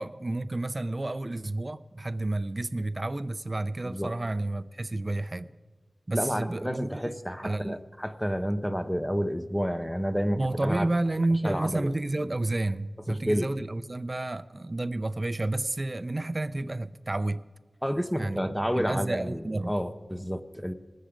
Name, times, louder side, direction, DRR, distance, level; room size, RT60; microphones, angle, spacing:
voice 1, 0.0-5.5 6.1-7.1 7.4-7.8 10.4-17.4 18.2-19.7, right 2 dB, 35° right, 0.4 m, -30 dB
voice 2, 6.1-10.9 11.4-11.9 13.1-13.5 17.8-20.7, equal, 5° left, 0.6 m, -30 dB
19.5 x 7.3 x 5.0 m
wide cardioid pair, 65°, 0 cm